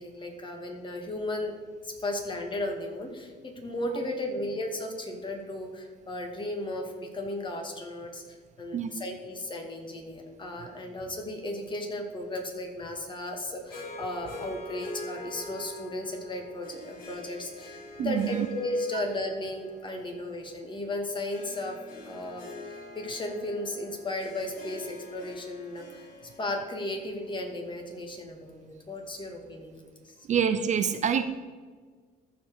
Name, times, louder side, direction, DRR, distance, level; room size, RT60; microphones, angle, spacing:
voice 1, 0.0-1.5 1.8-21.8 22.1-26.1 26.4-30.1, left 1 dB, 30° left, 3 dB, 2.1 m, -35 dB
Harp, 13.7-28.1, left 2 dB, 55° left, 2.9 m, -45 dB
voice 2, 18.0-18.5 18.9-19.0 30.3-31.2, right 8 dB, 45° right, 10 dB, 0.6 m, -26 dB
14.5 x 5.2 x 4.8 m, 1.5 s
cardioid pair, 110°, 17 cm